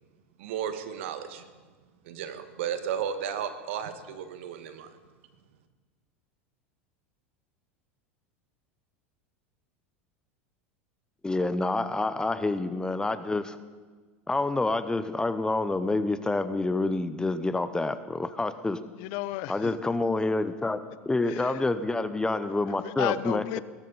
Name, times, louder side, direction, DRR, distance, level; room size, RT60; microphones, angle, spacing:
voice 1, 0.4-1.4 2.0-5.0, right 8 dB, 65° right, 9 dB, 1.5 m, -34 dB
voice 2, 11.2-13.6 14.3-18.8 19.5-20.8 21.1-23.4, left 2 dB, 10° left, 12 dB, 0.8 m, -27 dB
voice 3, 19.0-19.7 21.3-21.6 22.4-23.6, left 17 dB, 60° left, 17 dB, 0.6 m, -34 dB
20.5 x 12.0 x 4.0 m, 1.4 s
hypercardioid pair, 85°, 7 cm